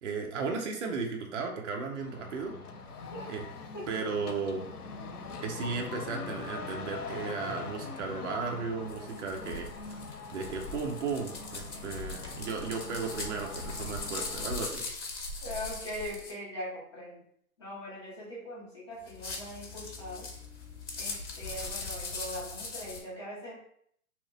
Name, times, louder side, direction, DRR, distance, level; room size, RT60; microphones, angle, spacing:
voice 1, 0.0-2.5 3.3-3.4 3.9-4.6 5.4-10.0 10.3-14.9, right 4 dB, 50° right, 1 dB, 0.6 m, -35 dB
sound 1, 1.9-14.8, left 4 dB, 85° left, 0.6 m, -43 dB
voice 2, 3.7-4.3 15.4-17.2 17.6-20.3 21.0-23.6, left 1 dB, 20° left, -8 dB, 0.5 m, -41 dB
sound 2, 8.9-16.3 19.0-23.0, left 3 dB, 50° left, 0.9 m, -40 dB
3.0 x 2.1 x 3.9 m, 0.66 s
hypercardioid pair, 150°, 45 cm